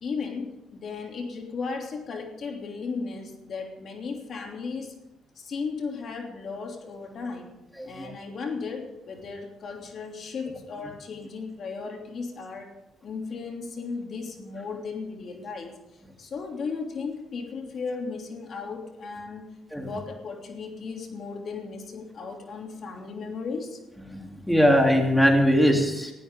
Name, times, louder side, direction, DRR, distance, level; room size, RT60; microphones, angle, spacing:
voice 1, 0.0-4.9 5.4-7.5 7.8-12.7 13.0-15.7 16.2-19.4 19.7-23.8, left 4 dB, 55° left, 2 dB, 3.0 m, -35 dB
voice 2, 7.8-8.1 19.7-19.9 24.1-26.1, equal, ahead, 1 dB, 3.4 m, -21 dB
19.5 x 15.5 x 3.8 m, 0.94 s
cardioid pair, 90°, 0 cm